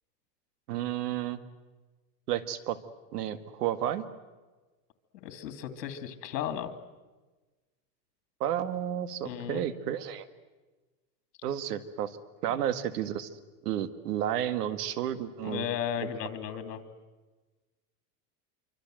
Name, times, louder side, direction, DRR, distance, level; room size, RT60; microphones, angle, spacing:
voice 1, 0.7-1.4 2.3-2.8 3.1-4.0 8.4-10.3 11.4-12.2 12.4-13.3 13.6-15.7, right 11 dB, 75° right, 11 dB, 1.9 m, -31 dB
voice 2, 5.2-6.7 9.2-9.6 12.5-12.6 15.4-16.8, left 9 dB, 85° left, 8 dB, 2.8 m, -35 dB
26.5 x 24.5 x 7.8 m, 1.2 s
supercardioid pair, 160°, 48 cm